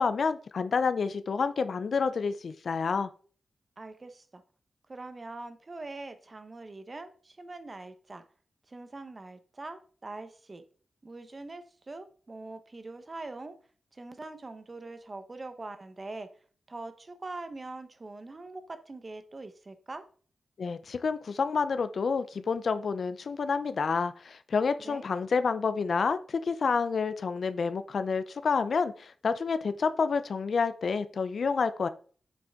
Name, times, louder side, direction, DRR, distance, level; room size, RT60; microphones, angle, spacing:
voice 1, 0.0-3.1 20.6-31.9, left 5 dB, 65° left, 11 dB, 0.6 m, -29 dB
voice 2, 3.8-4.4 4.9-8.2 8.7-10.6 11.0-13.5 13.9-16.3 16.7-20.1 24.8-25.1, right 2 dB, 35° right, 9 dB, 1.1 m, -43 dB
7.9 x 6.0 x 3.7 m, 0.42 s
wide cardioid pair, 85°, 0 cm